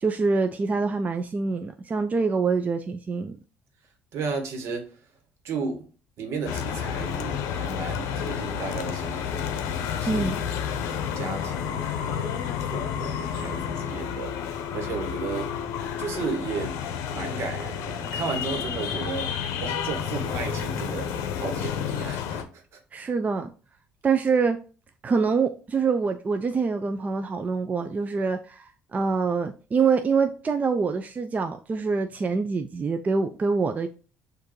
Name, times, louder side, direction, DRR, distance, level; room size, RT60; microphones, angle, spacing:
voice 1, 0.0-3.4 10.1-10.4 22.9-23.5 24.0-24.6 25.0-33.9, right 4 dB, 30° right, 0.4 m, -25 dB
voice 2, 4.1-5.0 5.4-5.9 6.2-10.3 11.1-15.5 16.0-16.8 17.1-22.8, right 5 dB, 65° right, 1.3 m, -34 dB
sound 1, 6.5-22.4, left 8 dB, 75° left, 0.6 m, -30 dB
6.4 x 2.6 x 3.1 m
supercardioid pair, 70°, 5 cm